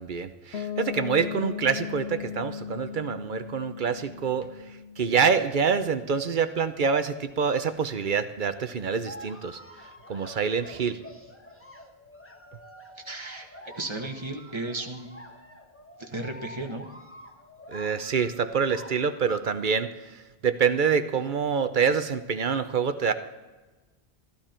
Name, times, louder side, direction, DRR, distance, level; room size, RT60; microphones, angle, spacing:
voice 1, 0.0-11.0 17.7-23.1, right 6 dB, 55° right, 10 dB, 0.8 m, -26 dB
Piano, 0.5-6.2, left 9 dB, 85° left, 1.0 m, -38 dB
sound 1, 9.0-19.4, left 1 dB, 10° left, 1.2 m, -47 dB
voice 2, 13.0-15.1 16.0-16.9, right 2 dB, 25° right, 3 dB, 1.5 m, -35 dB
14.5 x 12.5 x 4.4 m, 1.2 s
omnidirectional pair, 1.1 m